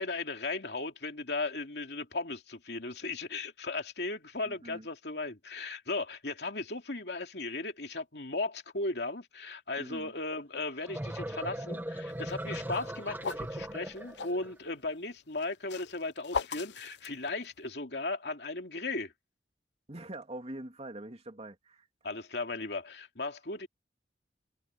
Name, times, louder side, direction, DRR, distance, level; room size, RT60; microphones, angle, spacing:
voice 1, 0.0-19.1 22.0-23.7, left 3 dB, 70° left, 2.9 m, -36 dB
voice 2, 4.4-4.9 9.8-10.1 19.9-21.9, right 1 dB, 35° right, 2.9 m, -44 dB
sound 1, 10.7-14.5, right 1 dB, 10° right, 1.0 m, -39 dB
sound 2, 12.2-14.4 15.3-17.7, left 5 dB, 85° left, 0.8 m, -38 dB
head